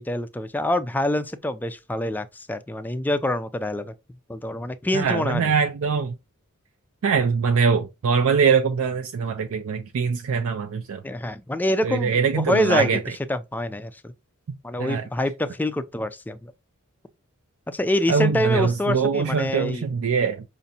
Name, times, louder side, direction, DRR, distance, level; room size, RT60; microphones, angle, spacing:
voice 1, 0.0-3.9 4.3-5.5 11.0-13.0 13.3-14.1 14.6-16.5 17.7-19.8, left 1 dB, 10° left, 0.3 m, -26 dB
voice 2, 4.9-6.1 7.0-11.0 11.8-13.0 14.8-15.0 18.1-20.4, right 5 dB, 70° right, 0.4 m, -22 dB
5.3 x 2.5 x 2.7 m
head